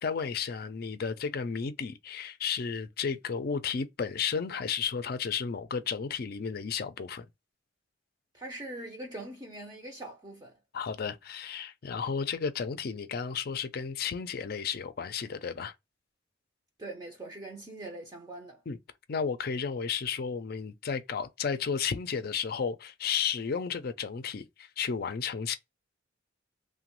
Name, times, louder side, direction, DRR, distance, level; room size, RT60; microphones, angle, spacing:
voice 1, 0.0-7.3 10.7-15.7 18.7-18.8 19.1-25.6, left 6 dB, 50° left, 0.4 m, -33 dB
voice 2, 8.3-10.6 16.8-18.6, right 2 dB, 20° right, 0.5 m, -42 dB
3.0 x 2.1 x 2.9 m
head